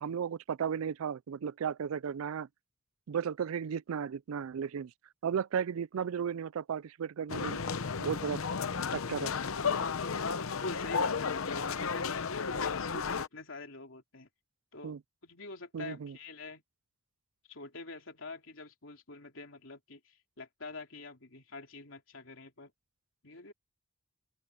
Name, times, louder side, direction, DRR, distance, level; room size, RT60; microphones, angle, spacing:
voice 1, 0.0-2.5 3.1-4.9 5.2-7.7 8.0-8.4 8.9-9.3 14.8-15.0 15.7-16.2, right 7 dB, 90° right, 0.4 m, -34 dB
sound 1, 7.3-13.3, left 5 dB, 85° left, 0.8 m, -33 dB
voice 2, 10.4-14.3 14.7-15.0 15.2-16.6 17.5-22.7 23.2-23.5, left 3 dB, 70° left, 3.2 m, -45 dB
open air
head